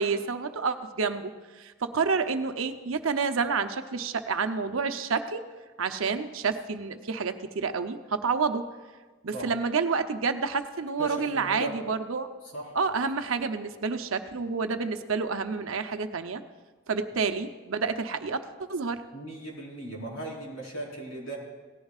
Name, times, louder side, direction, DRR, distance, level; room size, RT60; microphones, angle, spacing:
voice 1, 0.0-5.4 5.8-8.6 9.2-12.3 12.7-16.4 16.9-19.0, right 5 dB, 85° right, 8 dB, 0.7 m, -29 dB
voice 2, 11.0-11.8 12.5-12.7 19.1-21.4, right 1 dB, 85° left, -2 dB, 3.8 m, -37 dB
18.0 x 14.0 x 2.4 m, 1.3 s
head